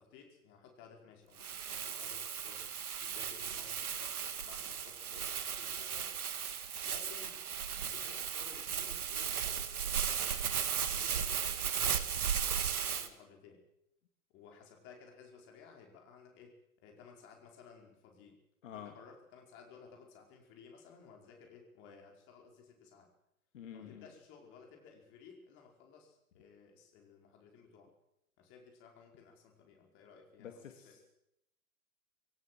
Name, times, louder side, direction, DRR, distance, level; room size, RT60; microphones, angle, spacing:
voice 1, 0.0-2.7 3.0-6.1 6.8-7.4 7.7-12.0 12.4-13.6 14.3-18.4 18.7-23.1 23.7-27.9 28.4-31.0, left 6 dB, 25° left, 2 dB, 5.0 m, -57 dB
Crumpling crinkling, 1.4-13.1, right 8 dB, 75° right, 2.3 m, -36 dB
voice 2, 18.6-18.9 23.5-24.1 30.4-31.0, left 9 dB, 55° left, 5 dB, 2.8 m, -48 dB
22.5 x 17.5 x 7.8 m, 0.81 s
hypercardioid pair, 145°, 44 cm